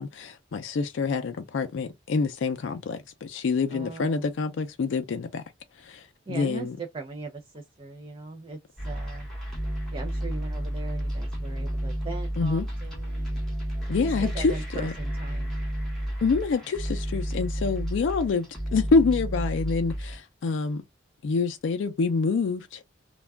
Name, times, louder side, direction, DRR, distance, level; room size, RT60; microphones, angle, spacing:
voice 1, 0.0-5.4 5.8-6.8 12.4-12.6 13.9-14.9 16.2-20.8 21.2-22.8, left 4 dB, 75° left, 0.4 m, -27 dB
voice 2, 3.7-4.3 6.3-9.3 9.9-13.5 13.9-15.6, right 3 dB, 30° right, 0.4 m, -39 dB
sound 1, 8.8-20.2, equal, ahead, 0.8 m, -31 dB
2.3 x 2.1 x 3.4 m
head